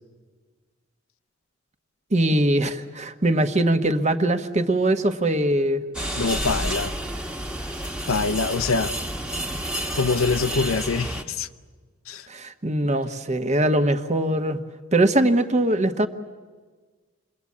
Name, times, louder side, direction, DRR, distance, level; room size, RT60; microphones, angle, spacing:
voice 1, 2.1-5.8 12.3-14.6 14.9-16.1, right 1 dB, 35° right, 1.1 m, -21 dB
sound 1, 5.9-11.2, right 1 dB, 5° right, 1.3 m, -30 dB
voice 2, 6.2-6.9 8.1-8.9 9.9-11.5 12.1-12.3, left 4 dB, 85° left, 0.7 m, -24 dB
28.5 x 21.5 x 8.5 m
head